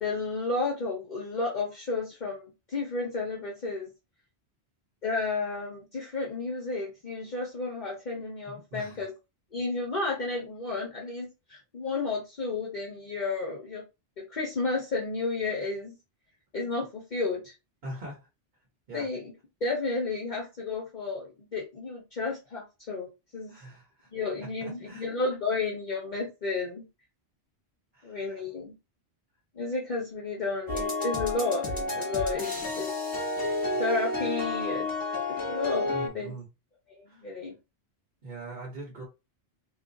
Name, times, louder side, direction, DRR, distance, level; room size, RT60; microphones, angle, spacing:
voice 1, 0.0-3.9 5.0-9.1 9.5-13.8 14.2-16.0 16.5-17.5 18.9-19.3 19.6-23.1 23.3-23.5 24.1-26.8 28.0-28.7 29.5-32.9 33.8-34.9 35.3-35.9 36.1-36.4 36.9-37.5, left 3 dB, 45° left, 0.9 m, -32 dB
voice 2, 8.4-9.0 17.8-18.2 18.9-19.1 23.5-24.1 24.6-25.1 27.9-28.4 35.9-36.5 37.1-37.3 38.2-39.0, right 2 dB, 55° right, 1.2 m, -42 dB
sound 1, 30.7-36.1, left 2 dB, 20° left, 1.2 m, -30 dB
2.8 x 2.4 x 3.8 m
omnidirectional pair, 1.1 m